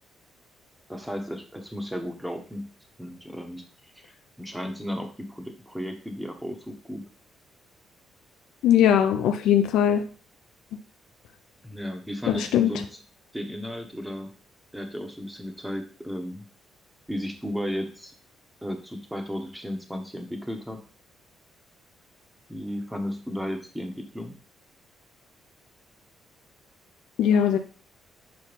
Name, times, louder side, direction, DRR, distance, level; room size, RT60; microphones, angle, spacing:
voice 1, 0.9-2.7 3.0-3.6 3.9-4.1 4.4-7.0 11.6-13.0 13.3-14.3 14.7-16.5 17.1-18.1 18.6-20.8 22.5-24.3, equal, 5° right, 4 dB, 1.5 m, -34 dB
voice 2, 8.6-10.1 12.3-12.7 27.2-27.6, left 9 dB, 85° left, 7 dB, 0.6 m, -20 dB
6.4 x 4.6 x 5.3 m, 0.40 s
cardioid pair, 90°, 0 cm